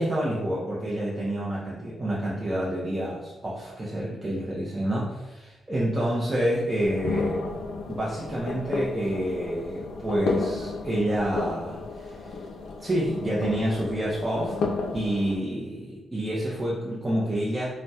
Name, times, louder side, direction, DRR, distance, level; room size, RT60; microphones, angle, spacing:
voice 1, 0.0-7.4 7.9-12.3 12.8-14.6 14.9-17.8, right 1 dB, 25° right, -6 dB, 0.5 m, -28 dB
sound 1, 6.8-15.4, left 3 dB, 75° left, 0.4 m, -32 dB
3.9 x 2.1 x 2.3 m, 1.1 s
cardioid pair, 105°, 0 cm